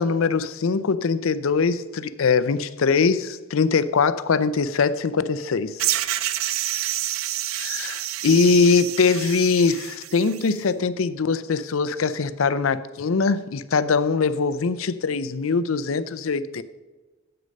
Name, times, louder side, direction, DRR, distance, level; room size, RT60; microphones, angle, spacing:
voice 1, 0.0-5.8 7.6-16.6, left 4 dB, 90° left, 0.5 m, -22 dB
sound 1, 5.8-10.5, right 13 dB, 90° right, 0.5 m, -28 dB
9.6 x 7.9 x 5.2 m
head